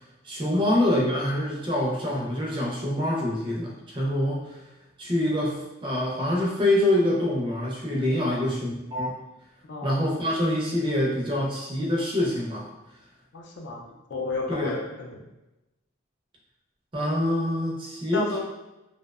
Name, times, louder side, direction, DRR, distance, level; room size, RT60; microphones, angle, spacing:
voice 1, 0.2-4.6 5.0-9.2 9.8-12.7 14.5-14.8 16.9-18.4, left 1 dB, 25° right, -3 dB, 0.4 m, -25 dB
voice 2, 8.2-8.5 9.7-10.0 13.3-15.3 18.1-18.4, left 2 dB, 55° left, 0 dB, 0.4 m, -33 dB
2.6 x 2.0 x 2.3 m, 0.99 s
head